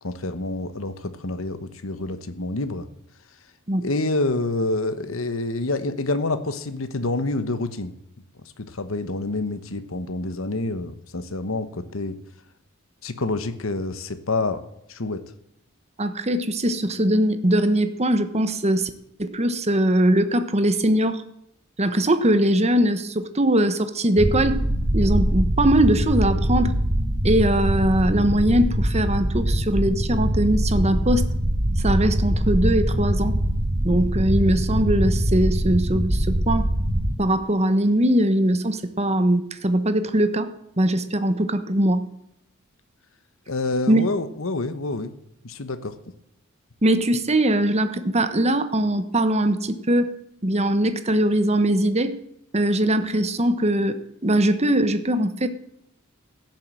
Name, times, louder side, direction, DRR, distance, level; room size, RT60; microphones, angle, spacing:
voice 1, 0.0-2.9 3.8-7.9 8.4-12.2 13.0-14.6 14.9-15.2 43.5-45.1 45.4-46.0, left 2 dB, 70° left, 10 dB, 1.2 m, -27 dB
voice 2, 16.0-18.9 19.2-21.2 21.8-24.6 24.9-26.7 27.2-31.2 31.8-33.4 33.8-36.7 37.2-40.5 40.8-42.1 43.9-44.0 46.8-50.1 50.4-52.2 52.5-55.5, right 1 dB, 30° right, 10 dB, 1.2 m, -21 dB
sound 1, 24.2-37.1, right 1 dB, 60° right, 2.4 m, -23 dB
16.0 x 7.6 x 7.7 m, 0.79 s
head